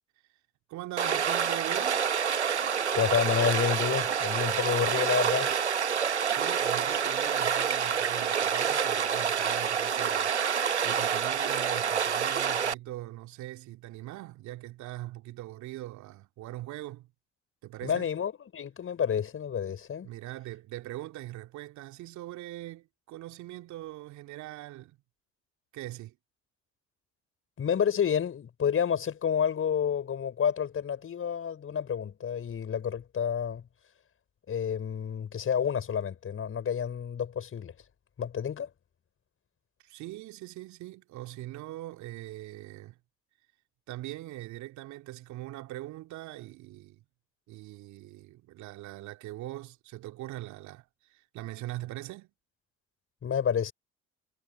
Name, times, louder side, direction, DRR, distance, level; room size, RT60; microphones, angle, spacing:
voice 1, 0.7-2.1 6.3-10.3 10.8-17.1 17.6-18.1 19.7-19.8 20.0-25.0 25.7-26.2 39.8-43.0 43.9-47.0 47.5-50.8 51.1-52.3, right 16 dB, 60° right, 2.8 m, -41 dB
Stream, 1.0-12.7, right 7 dB, 90° right, 1.4 m, -28 dB
voice 2, 2.9-5.5 17.8-20.1 27.6-33.6 34.5-37.7 38.2-38.7 53.2-53.7, left 8 dB, 40° left, 5.8 m, -29 dB
figure-of-eight pair, 55°, 33 cm